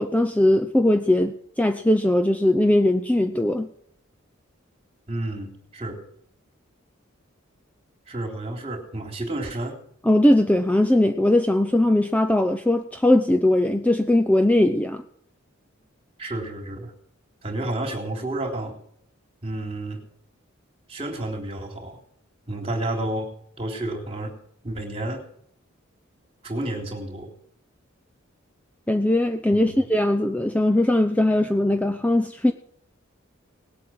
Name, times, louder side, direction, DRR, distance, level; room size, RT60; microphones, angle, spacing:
voice 1, 0.0-3.7 10.0-15.0 28.9-32.5, left 1 dB, 5° left, 7 dB, 0.7 m, -20 dB
voice 2, 5.1-6.0 8.1-9.8 16.2-16.9 17.4-18.8 19.4-20.0 20.9-22.0 22.5-23.3 23.6-24.3 24.6-25.2 26.4-27.3 29.5-29.8, right 1 dB, 30° right, 3 dB, 3.6 m, -30 dB
19.0 x 8.3 x 7.7 m, 0.67 s
head